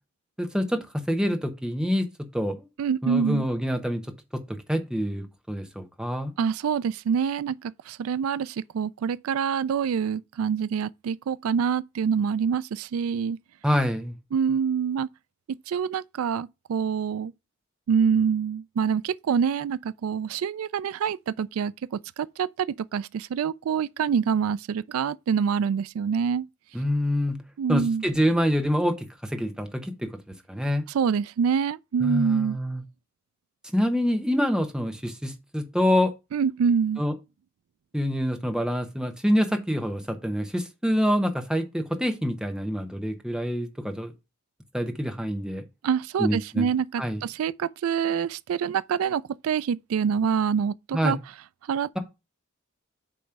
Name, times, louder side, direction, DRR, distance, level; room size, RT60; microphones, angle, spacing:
voice 1, 0.4-2.7 3.0-4.0 4.3-6.3 13.6-14.1 26.7-27.4 27.7-30.1 30.5-30.9 32.0-32.8 33.7-36.1 37.0-37.1 37.9-44.1 44.7-45.6 46.2-46.7 47.0-47.2 50.9-51.2, equal, 5° right, 1.0 m, -26 dB
voice 2, 2.8-3.4 6.4-13.4 14.3-15.1 15.7-17.3 17.9-21.7 22.2-26.5 27.6-28.0 30.9-32.6 36.3-37.0 45.8-51.2 51.7-51.9, right 7 dB, 90° right, 0.3 m, -26 dB
8.5 x 3.2 x 5.8 m
head